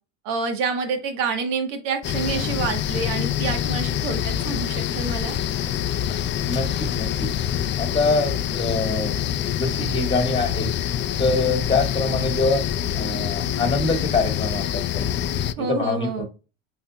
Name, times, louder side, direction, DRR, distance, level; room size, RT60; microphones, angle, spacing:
voice 1, 0.2-5.4 15.6-16.3, right 4 dB, 80° right, 6 dB, 1.4 m, -27 dB
sound 1, 2.0-15.5, left 10 dB, 35° left, 0.4 m, -26 dB
voice 2, 6.4-7.3 7.8-9.1 9.5-10.7 11.2-12.7 12.9-15.1 15.6-16.3, left 3 dB, 15° left, 5 dB, 1.3 m, -24 dB
5.7 x 4.0 x 2.2 m, 0.32 s
supercardioid pair, 80°, 36 cm